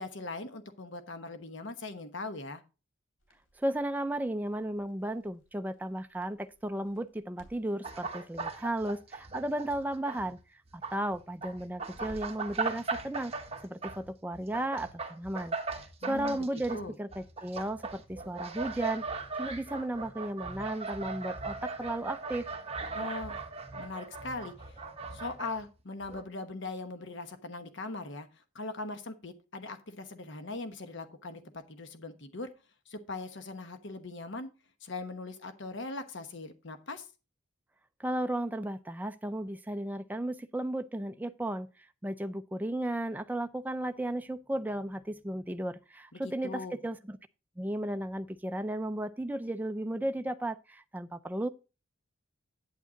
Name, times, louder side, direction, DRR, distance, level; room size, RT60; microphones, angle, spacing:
voice 1, 0.0-2.6 16.0-16.4 16.7-16.9 22.9-23.3 23.7-24.8 25.1-32.5 32.9-34.5 34.8-37.1 46.1-46.8, left 3 dB, 60° left, 1.1 m, -40 dB
Crackle, 3.2-12.5, right 1 dB, 75° left, 3.1 m, -59 dB
voice 2, 3.6-10.4 10.7-13.3 13.6-19.0 19.3-22.5 38.0-41.7 42.0-47.2 47.6-51.5, right 1 dB, 10° right, 0.4 m, -34 dB
sound 1, 7.8-10.3 10.6-25.7 26.0-26.2, right 4 dB, 30° right, 1.4 m, -39 dB
9.1 x 8.8 x 3.9 m
head